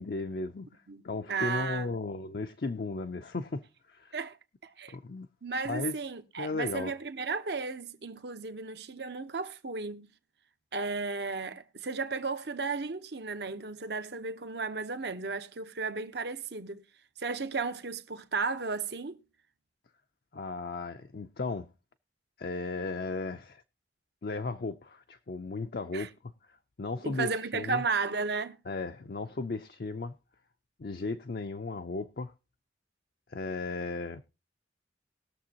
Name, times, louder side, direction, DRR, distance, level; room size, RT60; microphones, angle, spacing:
voice 1, 0.0-4.2 4.9-5.3 5.6-6.0 6.4-6.9 20.3-21.7 22.4-23.6 24.2-26.1 26.5-27.8 28.7-30.1 30.8-32.3 33.3-34.2, left 3 dB, 55° left, 0.5 m, -35 dB
voice 2, 1.3-1.9 4.1-4.4 4.6-5.0 5.4-10.1 10.7-16.8 17.2-19.2 25.9-26.1 27.0-28.6, right 4 dB, 70° right, 0.9 m, -34 dB
20.5 x 6.9 x 2.9 m
head